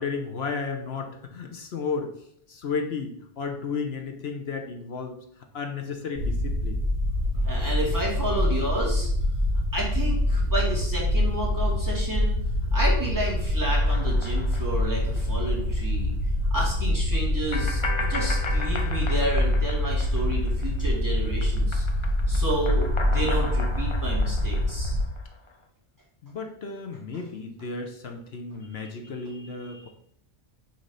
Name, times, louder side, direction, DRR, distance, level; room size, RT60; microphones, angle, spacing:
voice 1, 0.0-2.1 2.5-5.2 5.5-6.8 26.2-29.9, left 4 dB, 60° left, 4 dB, 1.0 m, -33 dB
sound 1, 6.2-25.0, left 1 dB, 35° right, 1.8 m, -25 dB
voice 2, 7.3-9.1 9.7-12.3 12.7-16.1 16.5-21.8 22.3-25.0 28.8-28.9 29.7-29.9, right 1 dB, 15° right, -5 dB, 2.1 m, -31 dB
sound 2, 13.8-15.5 15.8-15.9 17.5-21.0 21.3-25.5, left 3 dB, 40° left, 0.4 m, -37 dB
6.5 x 3.2 x 5.5 m, 0.70 s
omnidirectional pair, 1.3 m